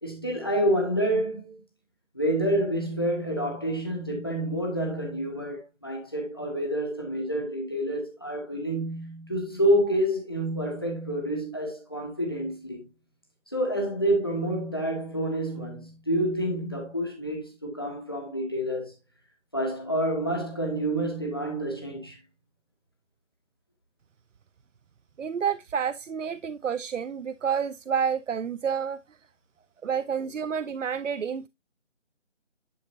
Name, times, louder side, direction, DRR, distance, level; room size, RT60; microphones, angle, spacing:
voice 1, 0.0-1.6 2.1-12.8 13.5-18.9 19.5-22.2 29.8-30.0, right 1 dB, 20° left, 1.6 m, -28 dB
voice 2, 25.2-29.0 29.8-31.5, right 7 dB, 90° right, 0.6 m, -29 dB
11.0 x 4.6 x 2.6 m
figure-of-eight pair, 180°, 36 cm